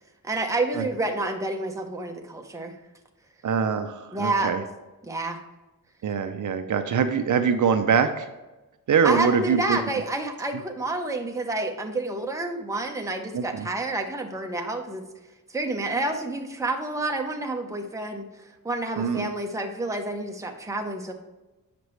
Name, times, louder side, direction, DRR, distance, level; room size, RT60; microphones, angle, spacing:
voice 1, 0.2-2.7 4.1-4.5 5.0-5.4 9.0-15.0 15.5-21.1, right 2 dB, 10° right, 3 dB, 0.7 m, -29 dB
voice 2, 3.4-4.6 6.0-8.3 8.9-9.8 13.3-13.7 19.0-19.3, right 6 dB, 60° right, 8 dB, 0.6 m, -23 dB
8.0 x 5.9 x 3.1 m, 1.1 s
wide cardioid pair, 135°, 35 cm